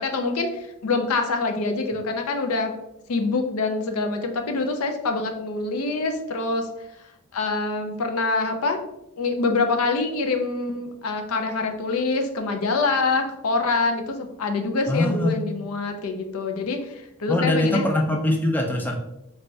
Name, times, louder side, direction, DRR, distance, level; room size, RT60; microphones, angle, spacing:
voice 1, 0.0-2.7 3.1-6.7 7.3-8.8 9.2-17.8, left 3 dB, 70° left, 5 dB, 0.5 m, -25 dB
voice 2, 14.9-15.4 17.3-19.0, left 1 dB, 10° left, 1 dB, 0.4 m, -22 dB
3.2 x 3.2 x 2.6 m, 0.85 s
head